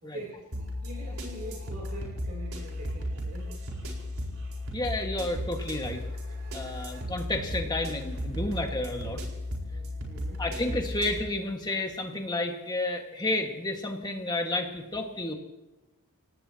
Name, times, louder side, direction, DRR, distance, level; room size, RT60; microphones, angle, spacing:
voice 1, 0.0-3.6 9.0-9.3 9.7-10.5, right 1 dB, 45° right, -3 dB, 3.5 m, -44 dB
sound 1, 0.5-11.2, left 1 dB, 80° right, 4.5 m, -35 dB
voice 2, 4.7-6.0 6.5-9.2 10.4-15.3, left 2 dB, 20° left, 3 dB, 1.7 m, -31 dB
28.0 x 18.0 x 2.9 m, 1.0 s
head